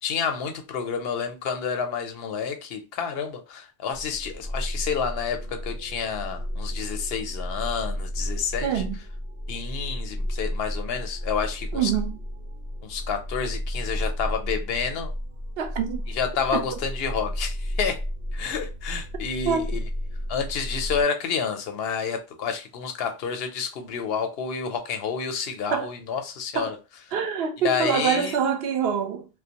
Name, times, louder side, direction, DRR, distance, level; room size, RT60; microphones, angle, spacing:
voice 1, 0.0-8.8 9.5-11.9 12.8-15.1 16.1-18.0 18.3-19.6 20.3-26.8 27.6-28.4, left 6 dB, 75° left, 0.8 m, -29 dB
sound 1, 3.9-21.0, equal, 50° right, 1.1 m, -32 dB
voice 2, 8.6-9.0 11.7-12.2 15.6-16.0 16.5-16.7 19.4-19.7 25.7-25.9 26.5-26.7 27.1-29.3, right 7 dB, 75° right, 0.8 m, -25 dB
2.5 x 2.1 x 2.8 m
omnidirectional pair, 1.0 m